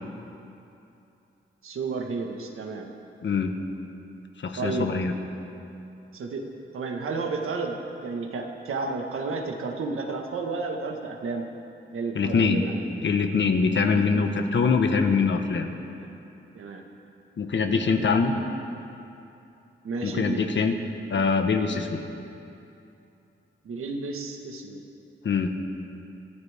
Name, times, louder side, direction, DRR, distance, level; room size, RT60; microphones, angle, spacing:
voice 1, 1.6-2.9 4.6-4.9 6.1-6.5 6.7-7.8 8.0-11.4 11.9-12.9 13.9-14.3 16.0-16.1 16.5-16.8 18.3-18.4 19.8-20.5 23.6-24.8, right 4 dB, 85° right, 2 dB, 1.7 m, -32 dB
voice 2, 3.2-3.5 4.4-5.1 12.1-12.6 13.0-15.7 17.4-18.3 20.0-20.7 21.1-22.0 25.2-25.5, left 5 dB, 60° left, 5 dB, 1.4 m, -23 dB
25.0 x 15.0 x 3.7 m, 2.8 s
cardioid pair, 90°, 21 cm